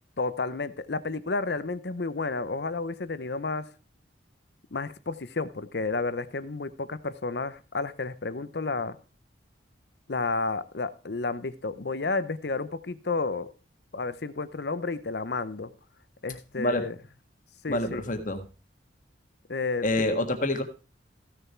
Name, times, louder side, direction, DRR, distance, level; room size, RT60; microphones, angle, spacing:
voice 1, 0.2-3.6 4.7-9.0 10.1-13.5 13.9-15.7 16.2-16.9 17.6-18.0 19.5-19.9 20.1-20.2, left 3 dB, 60° left, 15 dB, 0.8 m, -31 dB
voice 2, 17.7-18.4 19.8-20.6, left 1 dB, 45° left, 6 dB, 1.7 m, -27 dB
15.5 x 6.7 x 4.5 m, 0.34 s
head